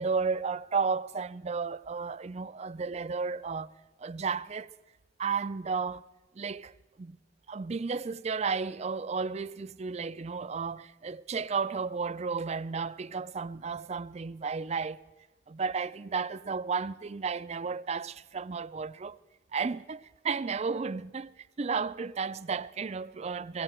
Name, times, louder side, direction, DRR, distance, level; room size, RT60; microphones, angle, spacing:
voice 1, 0.0-3.7 4.0-4.7 5.2-6.0 6.4-7.2 7.5-15.0 15.5-19.2 19.5-23.6, right 5 dB, 35° right, 0.4 m, -33 dB
18.0 x 16.5 x 4.4 m
head